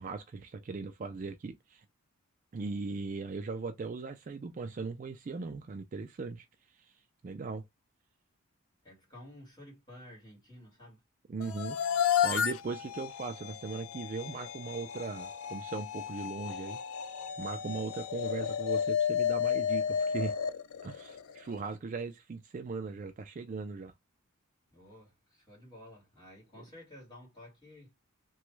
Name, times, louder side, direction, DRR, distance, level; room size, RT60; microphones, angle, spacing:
voice 1, 0.0-1.8 2.5-6.5 6.7-6.9 7.2-7.6 11.3-11.8 12.2-20.3 20.8-23.9, right 4 dB, 35° right, 0.3 m, -39 dB
voice 2, 8.8-11.0 24.7-27.9, left 1 dB, 20° left, 1.9 m, -52 dB
sound 1, 11.4-21.6, left 8 dB, 70° left, 0.3 m, -32 dB
2.9 x 2.3 x 3.1 m
head